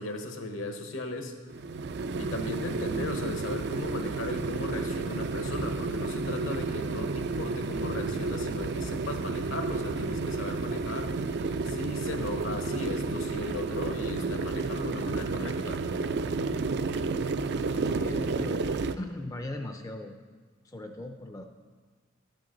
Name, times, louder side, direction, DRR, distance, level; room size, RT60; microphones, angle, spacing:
voice 1, 0.0-1.3 2.2-15.8, left 2 dB, 70° left, 5 dB, 1.1 m, -37 dB
sound 1, 1.5-19.0, right 3 dB, 55° right, 0.4 m, -31 dB
voice 2, 17.9-18.6 19.0-20.2 20.6-21.4, left 2 dB, 15° left, 5 dB, 0.4 m, -38 dB
12.0 x 9.0 x 3.9 m, 1.5 s
head